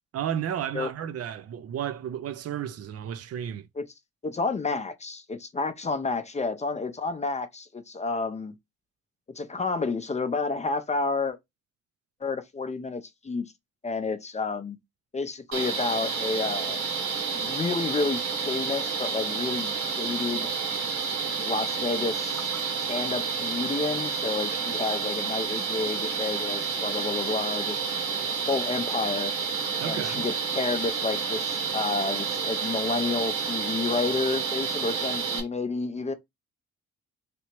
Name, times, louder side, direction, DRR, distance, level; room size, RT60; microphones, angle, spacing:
voice 1, 0.1-3.7 29.8-30.2, right 9 dB, 55° right, 0.4 m, -32 dB
voice 2, 4.2-8.5 9.4-11.4 12.2-13.5 13.8-14.8 15.1-16.8 17.3-20.5 21.4-22.5 22.9-27.8 28.5-29.3 29.9-36.1, left 4 dB, 25° left, 0.5 m, -30 dB
sound 1, 15.5-35.4, right 5 dB, 70° right, 1.2 m, -30 dB
3.3 x 2.8 x 2.9 m
cardioid pair, 90°, 30 cm